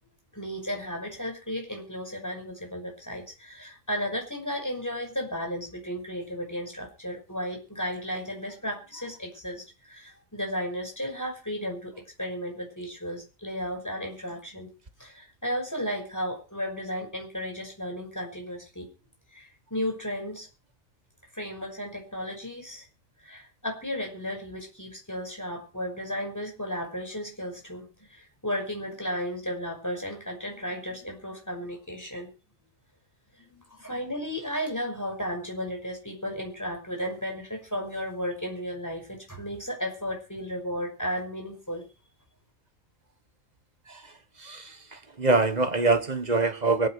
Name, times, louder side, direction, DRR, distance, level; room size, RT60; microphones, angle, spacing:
voice 1, 0.3-11.9 12.2-14.7 15.0-18.9 19.3-20.5 21.3-22.9 23.2-32.3 33.4-41.9, equal, 15° left, 2 dB, 6.0 m, -34 dB
voice 2, 45.2-46.9, right 3 dB, 35° right, 10 dB, 1.5 m, -23 dB
24.0 x 9.6 x 4.7 m, 0.33 s
omnidirectional pair, 1.3 m